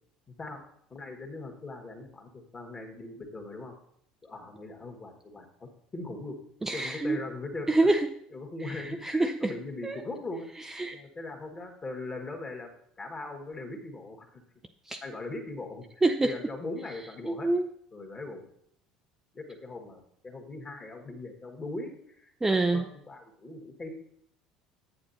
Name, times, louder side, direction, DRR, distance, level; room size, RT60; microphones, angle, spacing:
voice 1, 0.9-3.7 4.2-6.4 6.7-7.9 8.3-10.5 10.9-12.7 13.0-14.4 15.0-17.5 17.9-18.4 19.3-22.3 22.7-23.9, left 2 dB, 25° left, 2 dB, 1.8 m, -40 dB
voice 2, 6.6-7.2 7.7-8.1 8.7-9.5 9.8-10.0 10.8-11.0 14.9-15.0 16.0-16.3 17.3-17.7 22.4-22.8, right 2 dB, 10° right, 6 dB, 0.4 m, -26 dB
8.6 x 8.6 x 2.8 m, 0.69 s
figure-of-eight pair, 65°, 3 cm